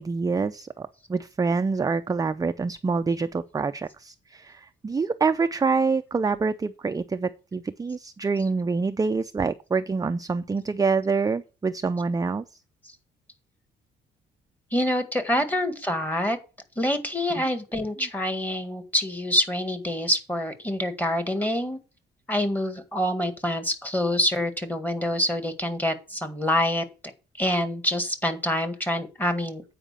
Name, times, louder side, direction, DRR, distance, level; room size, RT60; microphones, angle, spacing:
voice 1, 0.0-12.4 17.4-17.5, right 4 dB, 20° right, 0.4 m, -26 dB
voice 2, 14.7-16.4 16.8-21.8 22.3-26.8 27.4-29.6, left 1 dB, 10° left, 1.8 m, -26 dB
8.8 x 5.0 x 6.7 m
cardioid pair, 90°, 20 cm